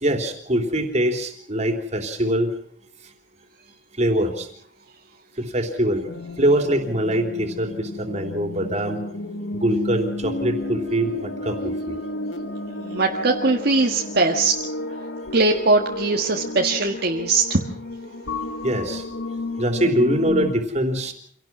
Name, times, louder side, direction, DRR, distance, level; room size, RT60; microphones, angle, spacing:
voice 1, 0.0-2.5 4.0-4.5 5.4-6.0 6.4-9.0 9.5-12.0 18.6-19.0 19.6-21.1, right 1 dB, 35° right, 5 dB, 3.4 m, -23 dB
sound 1, 6.1-20.5, left 1 dB, 85° left, 1.8 m, -32 dB
voice 2, 12.7-14.6 15.3-17.6, right 3 dB, 60° right, 0 dB, 1.8 m, -20 dB
26.0 x 18.0 x 6.2 m, 0.63 s
head